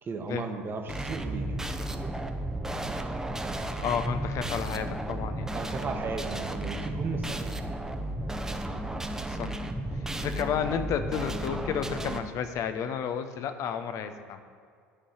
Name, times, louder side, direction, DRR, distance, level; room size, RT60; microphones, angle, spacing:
voice 1, 0.0-1.6 5.5-7.4, right 4 dB, 30° right, 4 dB, 1.3 m, -35 dB
sound 1, 0.9-12.2, right 1 dB, 5° right, 0.9 m, -33 dB
voice 2, 3.8-5.5 9.3-9.6 10.2-14.4, left 7 dB, 45° left, 9 dB, 0.9 m, -31 dB
11.5 x 5.6 x 7.7 m, 2.2 s
figure-of-eight pair, 70°, 7 cm